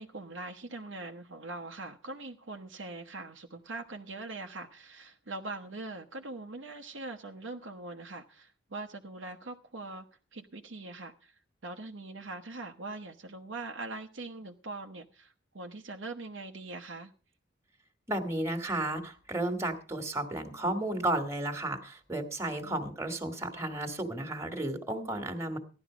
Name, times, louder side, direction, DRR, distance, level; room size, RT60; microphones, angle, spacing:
voice 1, 0.0-10.1 10.3-17.1 22.6-22.9, right 2 dB, 75° right, 1.0 m, -42 dB
voice 2, 18.1-25.6, right 1 dB, 15° right, 1.8 m, -33 dB
16.0 x 11.5 x 5.0 m
head